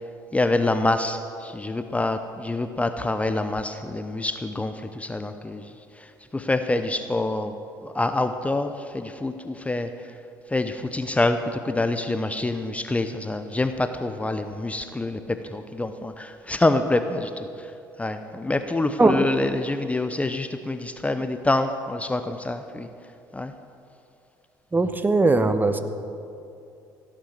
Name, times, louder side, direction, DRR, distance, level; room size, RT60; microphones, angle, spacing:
voice 1, 0.3-5.6 6.3-7.5 7.8-9.9 10.5-17.5 18.0-22.9 23.3-23.5, left 2 dB, 15° left, 9 dB, 0.8 m, -26 dB
voice 2, 24.7-25.8, right 3 dB, 20° right, 10 dB, 1.0 m, -19 dB
16.5 x 9.0 x 7.3 m, 2.6 s
hypercardioid pair, 60°, 10 cm